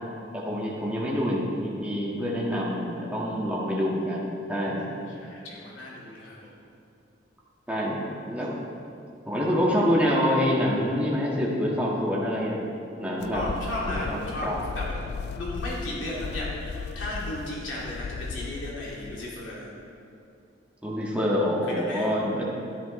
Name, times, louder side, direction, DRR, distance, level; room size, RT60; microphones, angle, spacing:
voice 1, 0.3-4.9 7.7-8.5 9.2-12.6 13.0-13.4 13.8-14.5 20.8-22.5, equal, 5° right, -5 dB, 1.8 m, -26 dB
voice 2, 4.8-6.5 13.3-19.7 21.7-22.1, left 1 dB, 85° left, -5 dB, 2.4 m, -35 dB
sound 1, 13.2-19.5, left 5 dB, 55° left, 0.3 m, -36 dB
13.0 x 11.0 x 3.3 m, 2.6 s
head